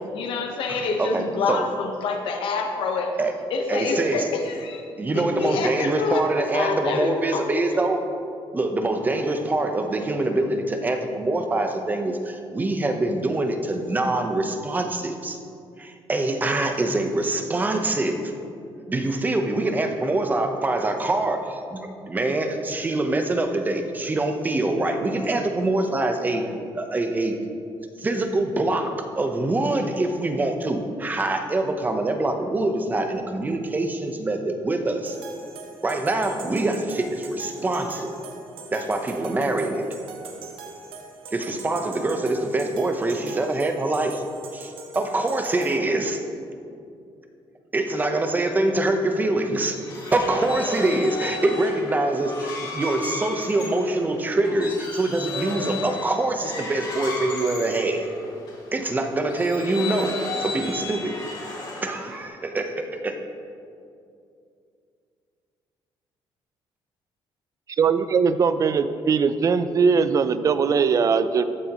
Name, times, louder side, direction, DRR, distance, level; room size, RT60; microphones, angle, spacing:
voice 1, 0.0-3.1 3.5-4.9 5.1-7.9, left 4 dB, 70° left, 3 dB, 1.1 m, -27 dB
voice 2, 0.7-1.6 3.2-3.3 3.7-4.2 5.0-8.0 8.5-15.4 15.8-18.2 18.9-26.4 26.7-27.3 28.0-35.2 35.8-38.1 38.7-39.9 41.3-44.2 44.5-46.2 47.7-49.8 50.1-58.1 58.7-61.1 61.8-63.1, right 2 dB, 20° right, 5 dB, 0.9 m, -24 dB
sound 1, 35.1-45.8, right 4 dB, 80° right, 1.2 m, -41 dB
sound 2, 49.5-58.6 59.2-62.2, left 3 dB, 50° left, 2.8 m, -34 dB
voice 3, 67.8-71.4, right 5 dB, 40° right, 12 dB, 0.4 m, -20 dB
14.0 x 9.1 x 3.0 m, 2.5 s
cardioid pair, 145°, 9 cm